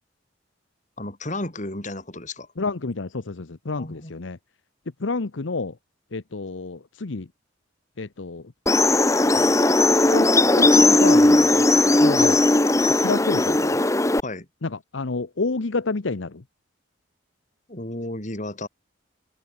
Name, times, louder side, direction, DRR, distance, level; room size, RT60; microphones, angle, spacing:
voice 1, 1.0-2.5 3.8-4.1 14.2-14.5 17.7-18.7, left 1 dB, 40° left, 4.8 m, -33 dB
voice 2, 2.6-4.4 5.0-5.7 6.1-7.3 8.0-8.5 9.3-9.5 10.1-10.3 10.6-11.6 12.0-12.4 12.8-13.8 14.6-16.4, left 3 dB, 85° left, 0.9 m, -29 dB
sound 1, 8.7-14.2, left 2 dB, 15° left, 1.0 m, -17 dB
head